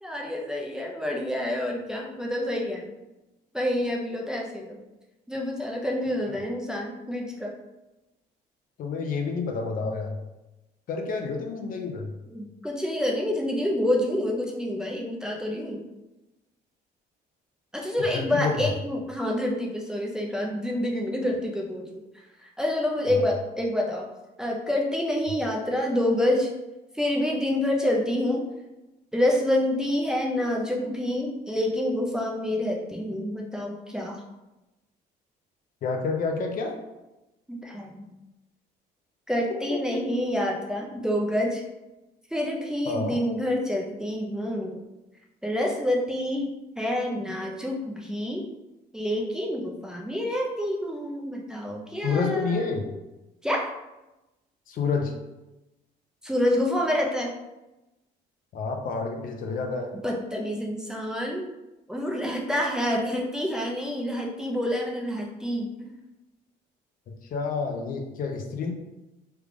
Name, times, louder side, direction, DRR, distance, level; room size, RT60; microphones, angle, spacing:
voice 1, 0.0-2.9 3.5-4.8 5.3-7.5 12.3-15.8 17.7-22.0 22.4-24.1 24.4-26.5 26.9-28.5 29.1-34.2 37.5-38.1 39.3-41.6 42.3-44.8 45.4-48.5 48.9-52.7 53.4-53.7 56.2-57.3 59.9-61.5 61.9-65.9, left 1 dB, 5° right, -1 dB, 0.5 m, -27 dB
voice 2, 8.8-10.2 10.9-12.1 18.1-18.6 23.1-23.3 35.8-36.8 39.7-40.0 42.9-43.2 52.0-52.9 54.7-55.1 58.5-59.9 67.1-68.7, left 4 dB, 55° left, 3 dB, 0.6 m, -29 dB
3.3 x 2.3 x 3.5 m, 1.0 s
cardioid pair, 110°, 17 cm